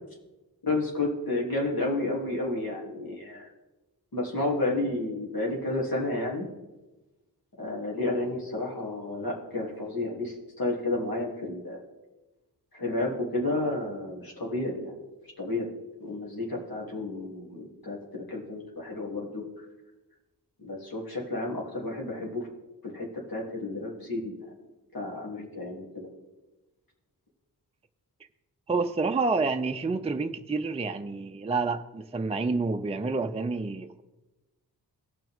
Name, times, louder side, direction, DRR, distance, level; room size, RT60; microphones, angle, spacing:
voice 1, 0.6-3.5 4.1-6.5 7.6-11.8 12.7-15.0 15.4-15.7 16.0-19.4 20.6-22.5 22.8-24.4 24.9-26.1, left 2 dB, 60° left, -2 dB, 3.0 m, -31 dB
voice 2, 28.7-34.0, right 3 dB, 15° right, 6 dB, 0.5 m, -28 dB
18.0 x 6.0 x 3.6 m, 1.1 s
wide cardioid pair, 75°, 39 cm